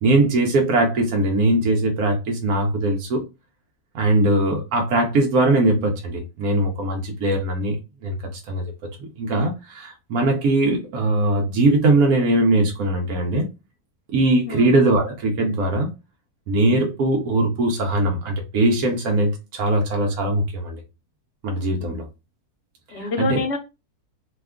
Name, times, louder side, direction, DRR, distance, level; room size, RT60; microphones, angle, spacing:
voice 1, 0.0-3.2 3.9-7.8 8.0-8.2 8.5-8.6 9.0-13.5 14.1-15.9 16.5-20.8 21.4-22.0 23.2-23.4, right 2 dB, 70° right, 1.1 m, -20 dB
voice 2, 22.9-23.6, left 3 dB, 60° left, 0.8 m, -27 dB
2.9 x 2.3 x 3.5 m
omnidirectional pair, 1.6 m